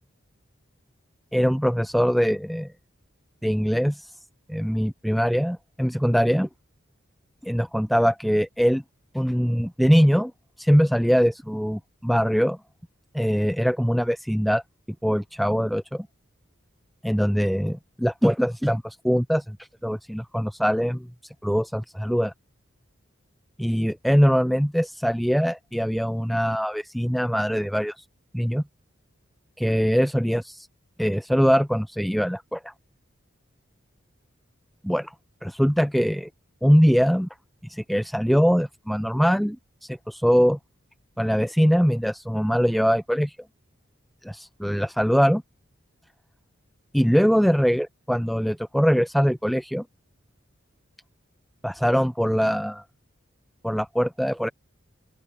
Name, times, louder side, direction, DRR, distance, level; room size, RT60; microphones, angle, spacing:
voice 1, 1.3-2.7 3.4-4.1 4.5-6.5 7.4-8.8 9.1-10.3 10.6-12.6 13.1-14.6 15.0-16.1 17.0-19.6 19.8-21.1 21.4-22.3 23.6-28.0 28.3-28.6 29.6-30.7 31.0-32.7 34.8-35.1 35.4-36.3 36.6-37.3 37.7-39.6 39.8-40.6 41.2-43.4 44.2-45.4 46.9-49.8 51.6-52.8 53.6-54.5, equal, ahead, 0.3 m, -22 dB
open air
head